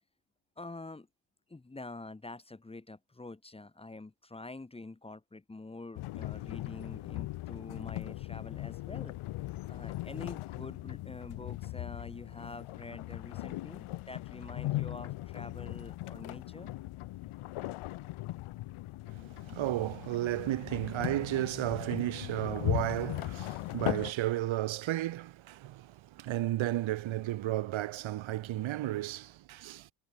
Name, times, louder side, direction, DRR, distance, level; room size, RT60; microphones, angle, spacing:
voice 1, 0.6-1.1 1.5-9.2 9.7-16.7, left 2 dB, 10° left, 3.9 m, -46 dB
sound 1, 5.9-24.1, left 17 dB, 85° left, 3.8 m, -39 dB
voice 2, 19.1-29.9, right 14 dB, 70° right, 5.0 m, -33 dB
cardioid pair, 165°, 48 cm